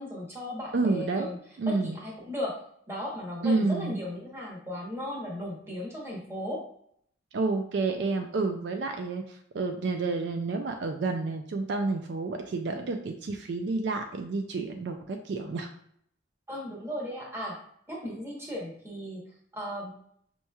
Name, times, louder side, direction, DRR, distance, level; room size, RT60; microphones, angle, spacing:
voice 1, 0.0-1.4 1.6-2.6 2.9-6.6 16.5-17.6 17.9-19.2 19.5-19.9, left 1 dB, 15° right, -3 dB, 1.0 m, -36 dB
voice 2, 0.7-1.3 1.6-2.0 3.4-4.0 7.3-15.7, right 3 dB, 60° right, 5 dB, 0.3 m, -30 dB
5.4 x 3.0 x 2.2 m, 0.67 s
head